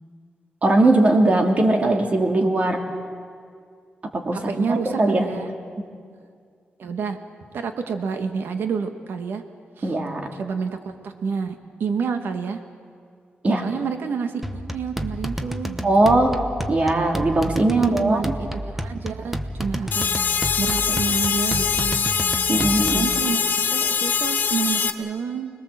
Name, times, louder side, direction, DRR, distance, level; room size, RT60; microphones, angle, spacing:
voice 1, 0.6-2.8 4.1-5.3 5.8-5.9 9.8-10.2 13.4-13.7 15.8-16.4 16.7-18.2 22.5-23.1, right 2 dB, 40° right, 3 dB, 2.7 m, -19 dB
voice 2, 4.3-5.5 6.8-7.2 7.5-9.4 9.8-10.0 10.3-11.5 11.8-12.6 13.6-15.8 17.7-20.1 20.6-22.1 22.9-25.5, right 6 dB, 80° right, 7 dB, 1.7 m, -29 dB
sound 1, 14.4-23.2, equal, 5° right, 1.0 m, -31 dB
sound 2, 19.9-24.9, left 6 dB, 65° left, 1.2 m, -23 dB
25.5 x 20.5 x 7.6 m, 2.2 s
wide cardioid pair, 115°, 4 cm